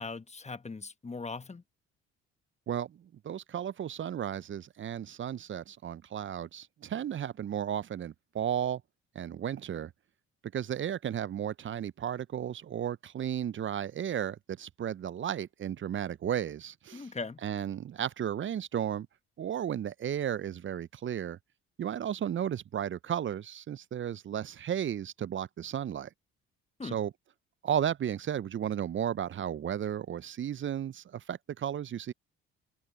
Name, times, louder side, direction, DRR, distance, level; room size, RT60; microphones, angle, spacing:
voice 1, 0.0-1.6 16.9-17.4 26.8-27.0, left 4 dB, 20° left, 1.4 m, -39 dB
voice 2, 2.7-8.8 9.1-9.9 10.5-17.1 17.4-19.1 19.4-21.4 21.8-26.1 26.8-27.1 27.6-32.1, right 9 dB, 40° right, 0.7 m, -34 dB
hypercardioid pair, 50°, 32 cm